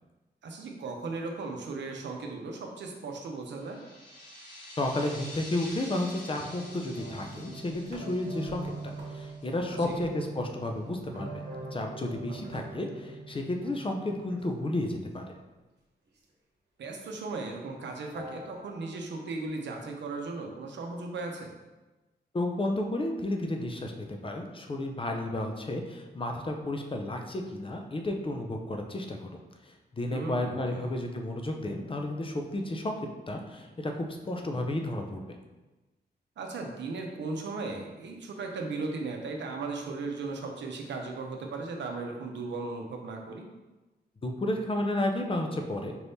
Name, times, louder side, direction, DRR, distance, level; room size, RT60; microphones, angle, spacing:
voice 1, 0.4-3.8 9.7-10.0 12.3-12.6 16.8-21.6 30.1-30.9 36.4-43.5, right 3 dB, 90° right, 2 dB, 0.6 m, -37 dB
sound 1, 3.6-9.9, left 1 dB, 65° left, 1.3 m, -47 dB
voice 2, 4.8-11.4 11.7-15.3 22.3-33.0 33.3-35.2 44.2-45.9, left 1 dB, 30° left, 3 dB, 0.6 m, -32 dB
sound 2, 6.3-14.7 15.2-15.3 16.2-16.3 16.9-17.0 17.2-17.6 18.1-19.4, right 2 dB, 70° right, 1.0 m, -43 dB
4.5 x 3.4 x 2.7 m, 1.1 s
cardioid pair, 70°, 18 cm